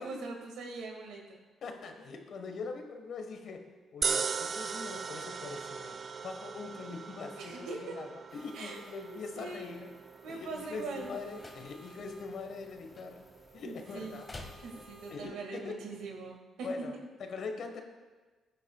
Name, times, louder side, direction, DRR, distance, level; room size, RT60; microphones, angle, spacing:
voice 1, 0.0-1.4 7.4-8.0 8.5-8.8 9.1-9.8 10.2-11.1 13.6-14.2 14.6-16.7, right 3 dB, 85° right, 2 dB, 1.9 m, -42 dB
voice 2, 1.6-3.6 3.9-6.0 6.2-9.9 10.3-13.2 13.5-14.3 15.1-15.8 16.6-16.9 17.2-17.8, left 4 dB, 65° left, 5 dB, 1.4 m, -42 dB
sound 1, 4.0-16.4, right 5 dB, 45° right, 0.4 m, -41 dB
sound 2, 8.3-15.1, left 1 dB, 10° left, 3.0 m, -57 dB
sound 3, 10.4-15.4, left 2 dB, 25° left, 1.7 m, -53 dB
15.5 x 9.7 x 2.4 m, 1.3 s
cardioid pair, 90°, 0 cm